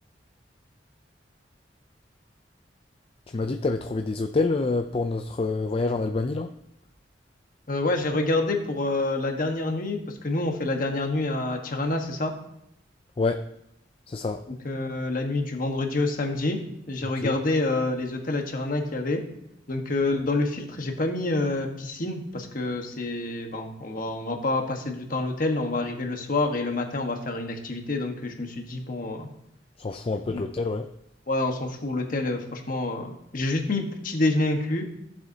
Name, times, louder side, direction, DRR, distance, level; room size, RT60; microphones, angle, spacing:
voice 1, 3.3-6.5 13.2-13.4 14.1-14.4 17.2-17.3 29.8-30.9, left 3 dB, 30° left, 6 dB, 0.4 m, -27 dB
voice 2, 7.7-12.3 14.5-16.6 16.9-19.2 19.7-29.3 30.3-30.4 31.3-34.9, left 2 dB, 50° left, 3 dB, 1.3 m, -27 dB
15.0 x 7.5 x 2.8 m, 0.79 s
head